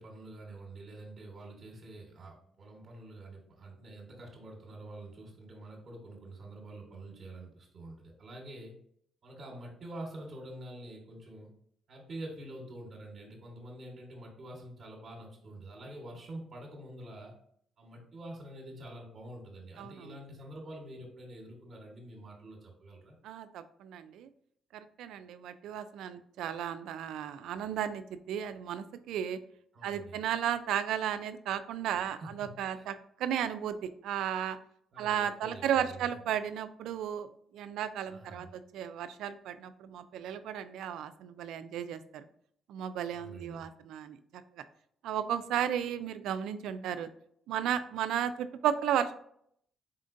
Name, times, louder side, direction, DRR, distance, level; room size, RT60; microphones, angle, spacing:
voice 1, 0.0-8.7 9.2-11.5 11.9-17.3 17.8-23.2 29.7-30.2 31.9-32.9 34.9-36.1 38.1-38.5 43.1-43.7, right 1 dB, 50° right, -2 dB, 1.1 m, -47 dB
voice 2, 19.8-20.1 23.2-24.3 24.7-29.4 29.8-34.6 35.0-42.3 42.7-44.2 44.5-44.6 45.0-47.1 47.5-49.1, right 9 dB, 85° right, 11 dB, 0.3 m, -34 dB
4.2 x 3.7 x 2.6 m, 0.67 s
cardioid pair, 90°, 0 cm